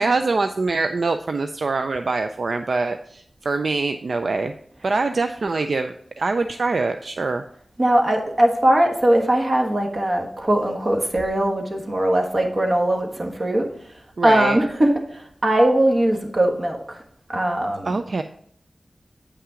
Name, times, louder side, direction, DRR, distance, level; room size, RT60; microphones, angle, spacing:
voice 1, 0.0-4.5 4.8-7.4 14.2-14.6 17.8-18.2, right 3 dB, 75° right, 8 dB, 0.4 m, -24 dB
voice 2, 7.8-13.7 14.2-17.0 17.3-18.0, right 1 dB, 50° right, 2 dB, 1.4 m, -20 dB
8.5 x 5.7 x 3.7 m, 0.65 s
wide cardioid pair, 90°, 0 cm